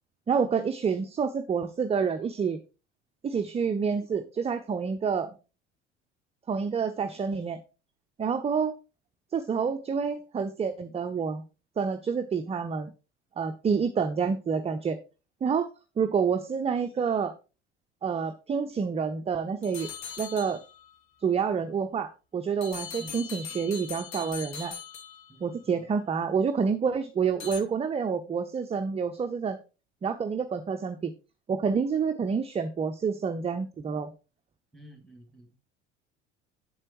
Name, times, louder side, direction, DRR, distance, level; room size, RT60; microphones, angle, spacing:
voice 1, 0.3-2.6 3.2-5.4 6.5-7.6 8.2-8.7 9.3-11.4 11.8-12.9 13.4-15.0 15.4-15.7 16.0-17.3 18.0-19.9 20.2-20.6 21.2-24.8 25.4-29.6 30.0-31.1 31.5-34.1, right 6 dB, 15° right, 8 dB, 0.6 m, -28 dB
sound 1, 19.6-21.0 22.6-25.6 27.4-27.6, left 7 dB, 50° left, 1.5 m, -40 dB
voice 2, 25.3-25.8 34.7-35.6, right 1 dB, ahead, 5 dB, 2.4 m, -50 dB
8.4 x 7.5 x 3.1 m, 0.32 s
figure-of-eight pair, 65°, 36 cm